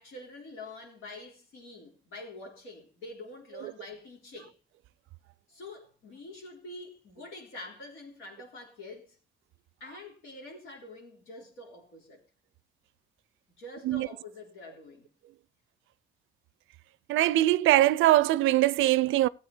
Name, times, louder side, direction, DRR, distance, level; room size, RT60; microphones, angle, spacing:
voice 1, 0.0-4.6 5.5-9.2 9.8-12.2 13.6-15.1, left 2 dB, 90° left, 3.8 m, -46 dB
voice 2, 17.1-19.3, right 15 dB, 85° right, 0.4 m, -22 dB
14.5 x 8.4 x 4.4 m
cardioid pair, 90°, 20 cm